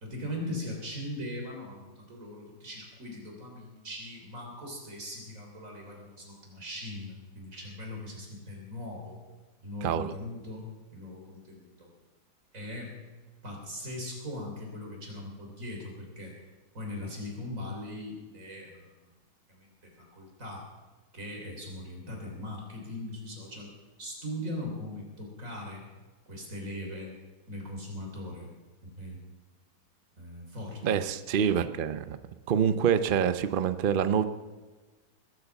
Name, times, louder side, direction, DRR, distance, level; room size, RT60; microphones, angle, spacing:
voice 1, 0.0-9.2 9.6-11.9 12.5-12.9 13.4-16.4 16.7-19.0 19.5-20.6 21.1-23.7 24.0-25.8 26.3-27.1 27.5-28.5 28.8-29.2 30.2-31.0, left 1 dB, 50° right, 0 dB, 3.7 m, -40 dB
voice 2, 9.8-10.1 30.8-32.2 32.5-34.2, right 8 dB, 80° right, 11 dB, 0.4 m, -26 dB
20.0 x 8.3 x 7.0 m, 1.3 s
omnidirectional pair, 1.8 m